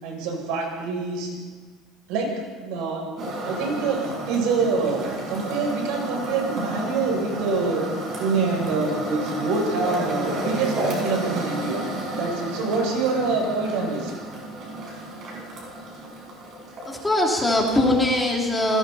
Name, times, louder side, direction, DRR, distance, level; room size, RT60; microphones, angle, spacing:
voice 1, 0.0-1.4 2.1-2.3 2.6-3.0 3.4-7.8 8.2-11.8 12.1-14.1, right 4 dB, 70° right, 0 dB, 7.7 m, -25 dB
sound 1, 3.2-18.0, right 1 dB, 35° right, 6.2 m, -32 dB
voice 2, 16.8-18.8, left 1 dB, 10° left, -2 dB, 3.4 m, -21 dB
28.5 x 20.5 x 4.4 m, 1.5 s
cardioid pair, 170°, 0 cm